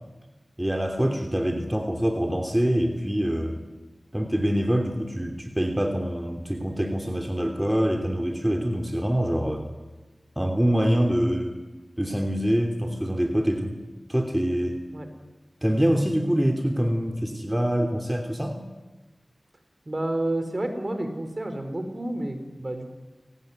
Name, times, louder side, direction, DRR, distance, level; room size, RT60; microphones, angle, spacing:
voice 1, 0.6-3.6 4.1-9.7 10.4-11.6 12.0-13.8 14.1-14.8 15.6-18.6, equal, 10° right, 3 dB, 3.0 m, -25 dB
voice 2, 19.9-22.9, right 1 dB, 40° right, 7 dB, 4.4 m, -30 dB
28.5 x 18.5 x 9.5 m, 1.2 s
wide cardioid pair, 50°, 0 cm